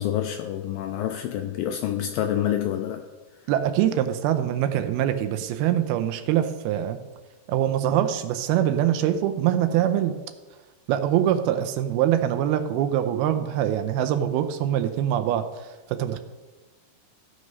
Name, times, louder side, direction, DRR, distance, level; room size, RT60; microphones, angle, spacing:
voice 1, 0.0-3.0, left 11 dB, 90° left, 2.1 m, -27 dB
voice 2, 3.5-7.0 7.5-10.2 10.9-15.5 15.9-16.2, right 11 dB, 80° right, 2.4 m, -23 dB
15.0 x 6.4 x 5.4 m
omnidirectional pair, 4.7 m